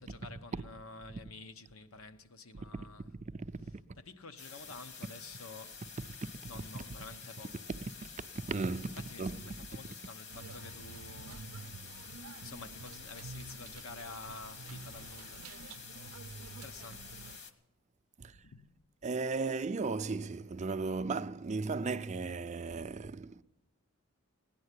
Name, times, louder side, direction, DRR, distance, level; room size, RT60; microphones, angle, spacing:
voice 1, 0.0-3.0 4.1-5.8 6.5-7.6 9.1-11.4 12.4-15.4 16.6-17.1 18.3-18.6, left 3 dB, 80° left, 0.9 m, -50 dB
voice 2, 2.5-4.0 6.2-6.8 7.8-9.7 18.2-18.4 19.0-23.4, right 3 dB, 35° right, 0.4 m, -37 dB
sound 1, 4.4-17.5, left 5 dB, 55° left, 1.3 m, -49 dB
sound 2, 10.3-17.4, right 4 dB, 85° right, 0.5 m, -49 dB
17.0 x 10.5 x 8.2 m
head